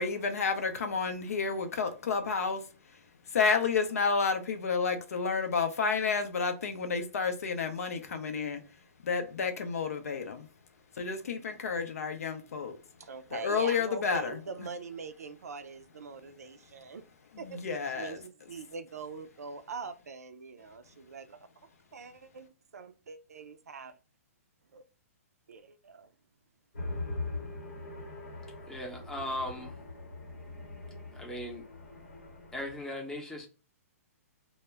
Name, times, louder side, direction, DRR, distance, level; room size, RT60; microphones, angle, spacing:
voice 1, 0.0-2.6 3.3-8.6 9.0-10.5 11.0-12.8 13.3-14.7 17.3-18.2, left 5 dB, 75° left, 0.5 m, -30 dB
voice 2, 13.0-17.0 17.4-17.6 17.9-21.4 21.9-23.9 24.7-24.8 25.5-26.1, right 5 dB, 85° right, 0.4 m, -43 dB
sound 1, 26.7-32.8, left 2 dB, 90° left, 0.9 m, -41 dB
voice 3, 28.7-29.8 31.1-31.7 32.5-33.5, left 1 dB, 5° left, 0.6 m, -38 dB
2.1 x 2.0 x 3.3 m
hypercardioid pair, 135°, 8 cm